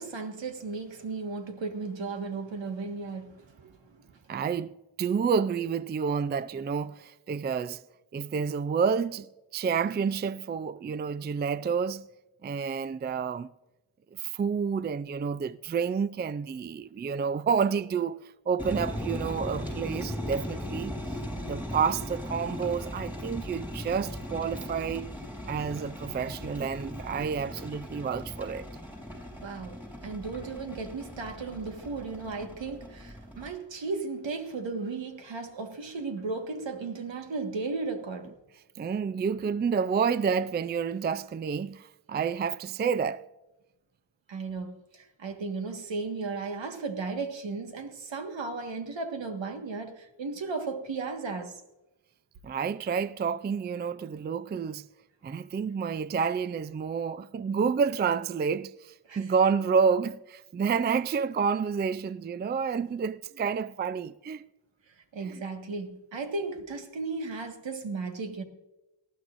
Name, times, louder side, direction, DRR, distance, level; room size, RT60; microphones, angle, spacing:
voice 1, 0.0-3.8 29.4-38.3 44.3-51.5 59.1-59.2 65.1-68.4, right 4 dB, 80° right, 1.7 m, -35 dB
voice 2, 4.3-7.8 8.1-9.3 9.5-12.1 12.4-13.5 14.2-18.2 18.5-21.0 21.4-25.1 25.5-28.7 38.8-43.3 52.4-54.9 55.2-64.4 65.2-65.4, right 6 dB, 25° right, 0.3 m, -29 dB
sound 1, 18.6-33.5, left 1 dB, 5° right, 5.0 m, -38 dB
18.5 x 14.0 x 2.5 m
wide cardioid pair, 95°, 44 cm